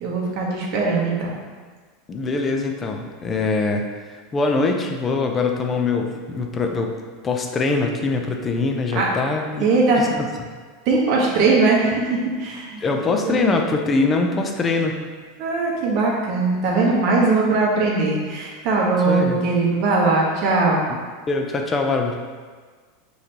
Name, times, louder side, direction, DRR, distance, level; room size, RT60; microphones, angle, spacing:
voice 1, 0.0-1.3 8.9-9.1 9.6-10.0 10.9-12.8 13.2-13.5 15.4-20.8, right 3 dB, 50° right, -3 dB, 1.1 m, -20 dB
voice 2, 2.1-6.9 7.2-9.7 10.0-10.3 12.8-15.0 19.1-19.4 21.3-22.2, left 3 dB, 20° left, 3 dB, 0.4 m, -23 dB
5.0 x 3.2 x 2.9 m, 1.5 s
supercardioid pair, 145°, 0 cm